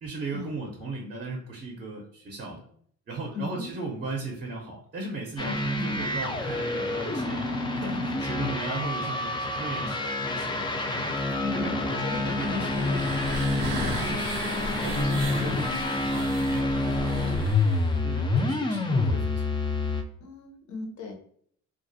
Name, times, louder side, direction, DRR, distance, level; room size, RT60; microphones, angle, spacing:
voice 1, 0.0-2.6 3.1-10.7 10.9-13.0 14.0-14.3 14.7-19.5, right 3 dB, 35° right, 0 dB, 0.6 m, -37 dB
voice 2, 3.3-3.7 5.5-6.0 7.3-7.4 7.7-7.8 10.0-10.2 11.4-13.4 13.8-14.6 15.0-15.3 20.2-21.1, left 4 dB, 70° left, 2 dB, 0.7 m, -39 dB
sound 1, 5.4-20.0, left 2 dB, 15° left, 0.3 m, -28 dB
sound 2, 12.1-18.0, right 2 dB, 85° right, 0.6 m, -37 dB
2.3 x 2.0 x 2.6 m, 0.62 s
cardioid pair, 90°, 30 cm